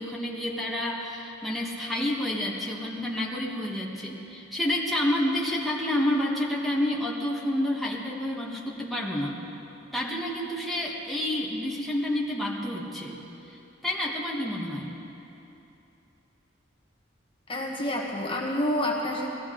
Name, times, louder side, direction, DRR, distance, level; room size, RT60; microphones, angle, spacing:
voice 1, 0.0-9.3 9.9-13.2 13.5-13.6 13.8-14.9, left 1 dB, ahead, -5 dB, 1.3 m, -29 dB
voice 2, 17.5-19.3, left 1 dB, 25° left, -1 dB, 1.2 m, -28 dB
19.0 x 14.5 x 3.8 m, 2.9 s
head